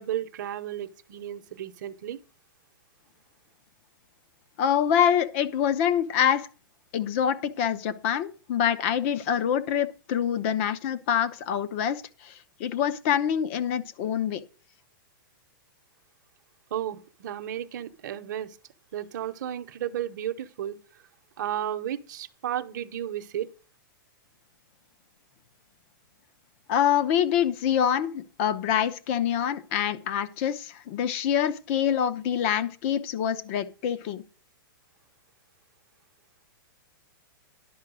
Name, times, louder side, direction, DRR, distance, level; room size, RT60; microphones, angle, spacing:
voice 1, 0.0-2.2 16.7-18.6 18.9-20.8 21.4-23.5, right 11 dB, 55° right, 0.9 m, -33 dB
voice 2, 4.6-6.5 6.9-14.4 26.7-34.2, left 9 dB, 35° left, 0.8 m, -26 dB
11.0 x 5.8 x 6.2 m
hypercardioid pair, 165°, 12 cm